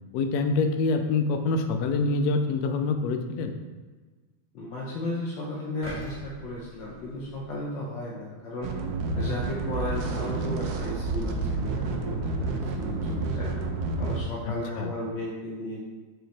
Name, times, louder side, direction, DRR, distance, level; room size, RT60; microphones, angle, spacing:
voice 1, 0.1-3.5 14.4-14.9, left 3 dB, 80° left, 6 dB, 0.8 m, -26 dB
voice 2, 4.5-8.7 9.1-13.5 14.0-15.9, left 1 dB, 65° left, -4 dB, 1.4 m, -35 dB
sound 1, 5.8-8.0 8.5-8.6, equal, 10° right, 0.7 m, -43 dB
sound 2, 8.6-14.2, right 3 dB, 70° right, 0.9 m, -29 dB
5.9 x 5.3 x 3.3 m, 1.3 s
omnidirectional pair, 2.3 m